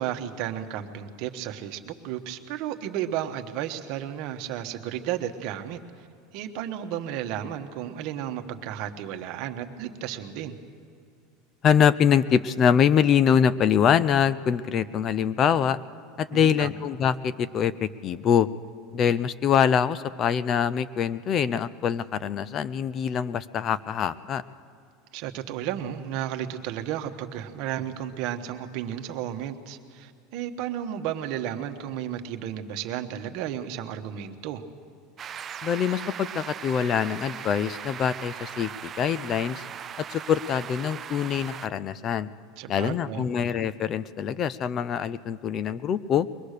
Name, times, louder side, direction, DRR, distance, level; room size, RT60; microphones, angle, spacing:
voice 1, 0.0-6.1 6.3-10.5 16.3-16.7 25.1-34.6 42.6-43.3, right 10 dB, 55° right, 6 dB, 1.2 m, -33 dB
voice 2, 11.6-15.8 16.2-18.5 18.9-24.4 35.6-39.6 40.1-42.3 42.7-46.3, left 8 dB, 30° left, 17 dB, 0.5 m, -24 dB
sound 1, 35.2-41.7, right 8 dB, 25° right, 0.5 m, -39 dB
22.5 x 19.5 x 6.7 m, 2.4 s
supercardioid pair, 150°, 0 cm